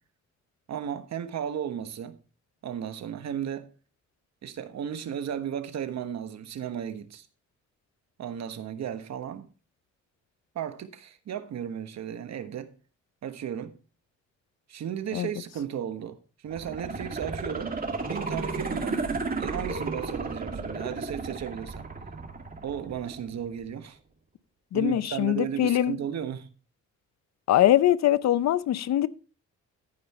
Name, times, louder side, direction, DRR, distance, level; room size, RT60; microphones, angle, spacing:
voice 1, 0.7-2.2 2.6-3.7 4.4-7.3 8.2-9.5 10.5-12.8 13.2-13.7 14.7-16.2 16.4-17.7 18.0-19.0 19.4-21.9 22.6-24.0 24.7-26.5, right 9 dB, 60° right, 1.3 m, -34 dB
sound 1, 16.5-23.5 23.8-23.9, right 3 dB, 30° right, 2.1 m, -33 dB
voice 2, 24.7-25.9 27.5-29.1, left 12 dB, 60° left, 0.6 m, -22 dB
14.0 x 5.4 x 4.3 m
cardioid pair, 90°, 30 cm